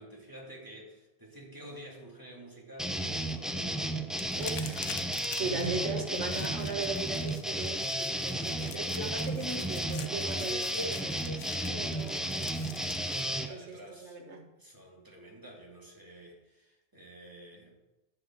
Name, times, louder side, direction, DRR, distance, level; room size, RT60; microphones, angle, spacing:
voice 1, 0.0-4.4 12.7-17.7, right 1 dB, 15° right, -3 dB, 2.7 m, -50 dB
sound 1, 2.8-13.5, right 1 dB, ahead, 0.5 m, -33 dB
sound 2, 4.1-13.3, left 8 dB, 90° left, 1.1 m, -46 dB
voice 2, 4.4-4.9 5.3-12.4 13.5-14.4, right 3 dB, 70° right, 3 dB, 1.8 m, -38 dB
11.0 x 5.4 x 7.6 m, 1.0 s
omnidirectional pair, 1.2 m